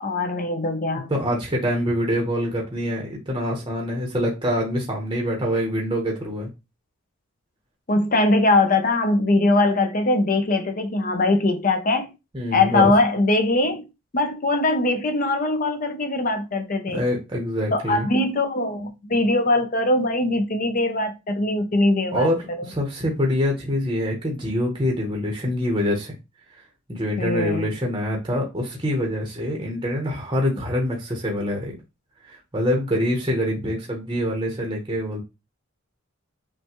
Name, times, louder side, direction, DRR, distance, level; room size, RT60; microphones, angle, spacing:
voice 1, 0.0-1.1 7.9-12.1 12.5-13.8 14.1-17.0 17.7-22.3 27.2-27.7, left 2 dB, 40° left, 0.6 m, -21 dB
voice 2, 1.1-6.5 12.3-12.9 16.9-18.1 22.1-22.4 22.7-26.1 26.9-31.7 32.2-35.2, equal, 20° right, 0.8 m, -25 dB
5.6 x 2.2 x 2.9 m
head